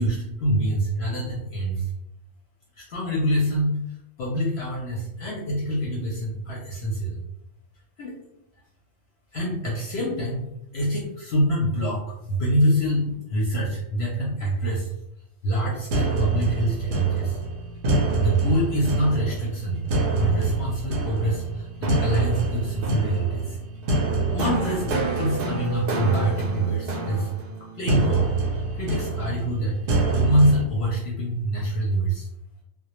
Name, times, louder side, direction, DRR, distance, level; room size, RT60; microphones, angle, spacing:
voice 1, 0.0-1.9 2.8-3.8 4.2-7.2 8.0-8.2 9.3-10.5 10.7-14.9 15.4-17.4 18.2-19.8 20.2-23.6 24.3-27.3 27.8-29.8 30.1-32.3, right 1 dB, 65° left, -3 dB, 0.7 m, -25 dB
sound 1, 15.9-30.6, right 3 dB, 60° right, 0.6 m, -26 dB
2.2 x 2.0 x 2.9 m, 0.82 s
omnidirectional pair, 1.3 m